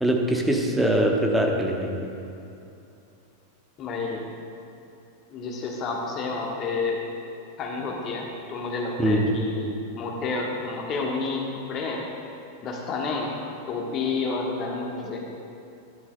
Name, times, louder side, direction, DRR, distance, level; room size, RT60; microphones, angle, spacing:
voice 1, 0.0-2.1 9.0-9.3, right 1 dB, 5° right, 0 dB, 1.0 m, -22 dB
voice 2, 3.8-4.2 5.3-7.0 7.6-12.0 12.6-13.3 13.7-15.2, left 4 dB, 30° left, -1 dB, 1.3 m, -30 dB
11.5 x 11.0 x 2.2 m, 2.7 s
figure-of-eight pair, 90°, 0 cm